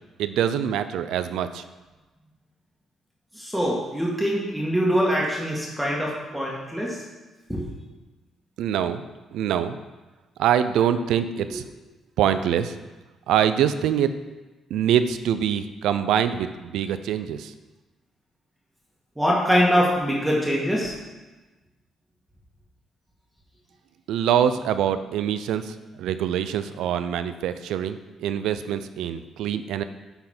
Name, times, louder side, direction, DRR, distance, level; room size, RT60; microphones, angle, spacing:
voice 1, 0.2-1.6 8.6-9.0 9.3-9.8 10.4-11.7 12.2-12.8 13.3-14.1 14.7-17.5 24.1-29.8, right 9 dB, 85° right, 11 dB, 0.4 m, -24 dB
voice 2, 3.3-7.0 7.5-7.6 19.2-21.0, equal, 5° right, -4 dB, 1.6 m, -23 dB
11.0 x 3.9 x 4.4 m, 1.2 s
cardioid pair, 90°, 0 cm